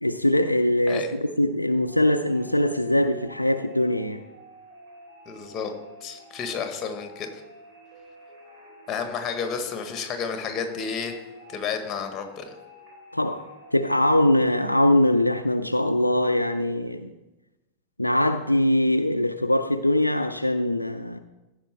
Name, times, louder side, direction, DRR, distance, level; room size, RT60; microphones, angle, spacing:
voice 1, 0.0-4.2 13.1-13.4 13.7-17.1 18.0-21.2, left 1 dB, 85° left, 8 dB, 0.4 m, -22 dB
sound 1, 1.9-15.3, equal, 50° right, 2.9 m, -48 dB
voice 2, 5.2-5.7 6.0-7.3 8.9-11.2 11.5-12.5, left 6 dB, 25° left, 7 dB, 1.4 m, -31 dB
15.0 x 5.2 x 4.4 m, 1.0 s
figure-of-eight pair, 90°, 0 cm